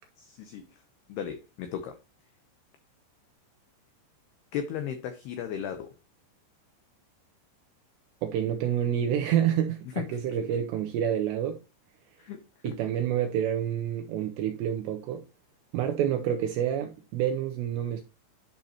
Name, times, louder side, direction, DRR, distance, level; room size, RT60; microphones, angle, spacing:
voice 1, 0.2-0.8 1.1-2.0 4.5-6.0 9.9-10.1 12.2-12.8, left 8 dB, 85° left, 2.3 m, -36 dB
voice 2, 8.2-11.6 12.6-15.2 15.7-18.0, right 10 dB, 80° right, 2.5 m, -28 dB
10.5 x 5.3 x 2.8 m
omnidirectional pair, 5.7 m